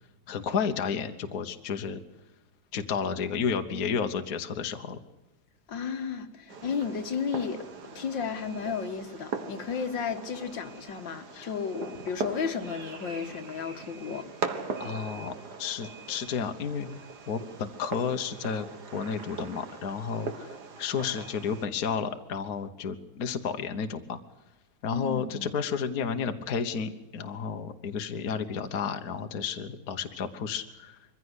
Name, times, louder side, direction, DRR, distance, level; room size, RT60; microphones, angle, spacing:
voice 1, 0.3-2.0 2.7-5.0 11.3-11.5 14.8-15.3 15.6-16.9 17.3-18.7 18.9-24.2 24.8-31.0, left 6 dB, 50° left, 1.5 m, -32 dB
voice 2, 5.7-7.7 7.9-14.3 24.9-25.5, left 6 dB, 70° left, 2.0 m, -33 dB
Fireworks, 6.5-21.7, right 4 dB, 55° right, 2.1 m, -40 dB
23.0 x 15.5 x 8.1 m
omnidirectional pair, 2.2 m